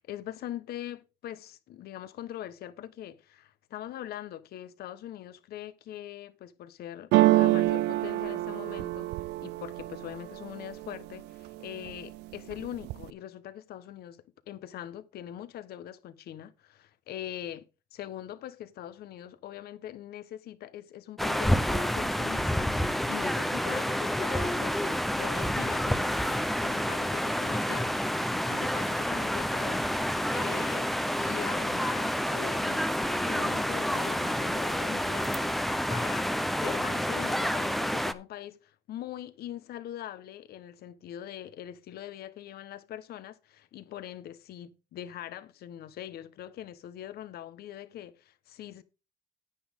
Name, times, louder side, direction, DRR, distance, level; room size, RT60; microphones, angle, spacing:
voice 1, 0.0-9.1 9.4-17.7 17.9-36.3 36.6-48.8, left 11 dB, 70° left, 1.2 m, -42 dB
sound 1, 7.1-11.0 11.4-12.0 12.3-13.1, right 17 dB, 85° right, 0.5 m, -26 dB
sound 2, 21.2-38.1, equal, ahead, 0.7 m, -29 dB
10.0 x 9.6 x 3.7 m
cardioid pair, 110°, 17 cm